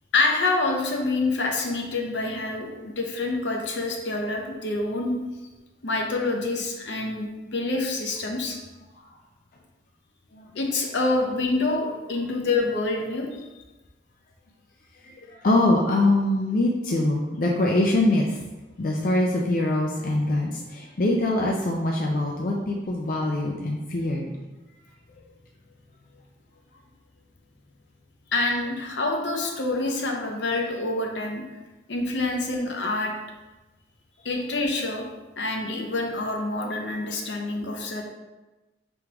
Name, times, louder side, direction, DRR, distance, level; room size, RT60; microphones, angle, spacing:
voice 1, 0.1-5.1 5.8-8.6 10.5-13.5 28.3-31.4 31.9-33.1 34.2-35.1 35.4-38.0, left 2 dB, 75° left, 1 dB, 0.7 m, -26 dB
voice 2, 15.0-18.5 18.8-24.3, left 1 dB, 50° left, -1 dB, 0.4 m, -24 dB
4.8 x 3.5 x 2.9 m, 1.1 s
head